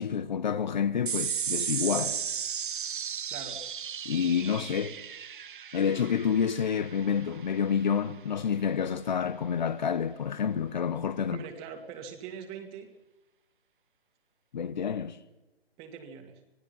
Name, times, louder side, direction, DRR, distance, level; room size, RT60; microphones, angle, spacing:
voice 1, 0.0-2.2 4.0-5.0 5.7-11.4 14.5-15.2, left 7 dB, 45° left, 1.3 m, -28 dB
sound 1, 1.1-7.8, right 8 dB, 55° right, 0.8 m, -35 dB
voice 2, 3.3-3.6 11.3-12.9 15.8-16.4, right 7 dB, 20° right, 2.2 m, -42 dB
26.0 x 19.0 x 5.7 m
figure-of-eight pair, 150°, 31 cm